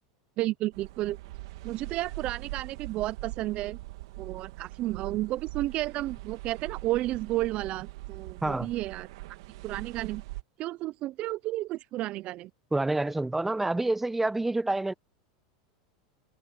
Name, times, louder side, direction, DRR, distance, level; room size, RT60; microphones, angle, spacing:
voice 1, 0.4-1.2 1.6-3.8 4.2-9.4 9.6-10.2 10.6-12.5, right 16 dB, 45° right, 0.5 m, -32 dB
sound 1, 0.7-10.4, right 19 dB, 70° right, 2.4 m, -42 dB
voice 2, 12.7-14.9, right 2 dB, 10° right, 0.9 m, -27 dB
supercardioid pair, 115°, 3 cm